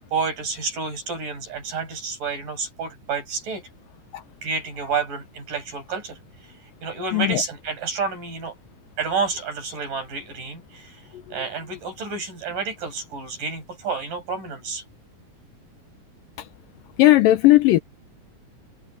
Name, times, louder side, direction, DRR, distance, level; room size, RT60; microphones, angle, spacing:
voice 1, 0.1-3.6 4.4-6.2 6.8-8.6 9.0-11.0 11.3-14.8, right 5 dB, 60° right, 9.0 m, -29 dB
voice 2, 17.0-17.8, left 16 dB, 75° left, 2.3 m, -15 dB
omnidirectional pair, 4.3 m